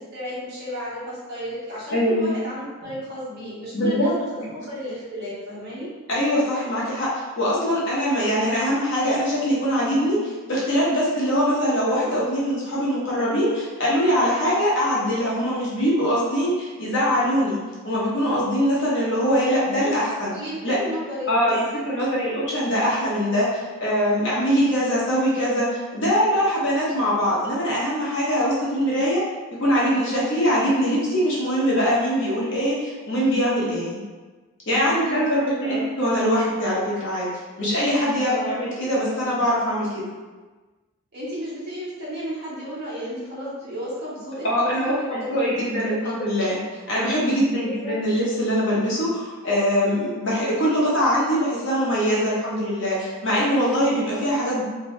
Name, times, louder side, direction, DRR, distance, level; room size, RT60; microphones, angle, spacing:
voice 1, 0.1-4.2 4.5-5.9 20.2-21.5 22.0-22.3 34.8-35.9 38.2-38.7 41.1-46.2 47.5-48.0, equal, 50° right, -9 dB, 1.1 m, -33 dB
voice 2, 1.9-2.3 3.7-4.4 6.1-17.6 17.8-20.3 20.6-20.8 21.3-29.2 29.6-34.0 34.7-37.3 37.6-40.0 44.4-46.6 46.9-54.6, equal, 55° left, -7 dB, 0.8 m, -22 dB
2.6 x 2.2 x 3.1 m, 1.3 s
head